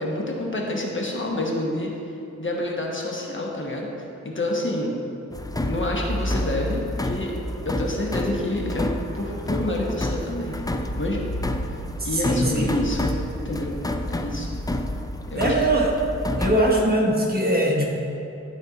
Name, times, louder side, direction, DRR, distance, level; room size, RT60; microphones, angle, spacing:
voice 1, 0.0-1.9 2.4-3.9 4.2-5.0 5.7-7.4 7.6-8.9 9.1-10.5 11.0-11.3 12.0-13.1 13.4-13.8 14.1-14.5 15.3-15.6, left 1 dB, 45° left, -1 dB, 1.2 m, -28 dB
sound 1, 5.3-16.8, left 1 dB, 15° left, 0.4 m, -29 dB
voice 2, 12.0-12.7 15.3-15.9 16.4-17.8, right 1 dB, 35° right, -2 dB, 1.2 m, -21 dB
11.5 x 4.4 x 4.0 m, 3.0 s
wide cardioid pair, 95°, 29 cm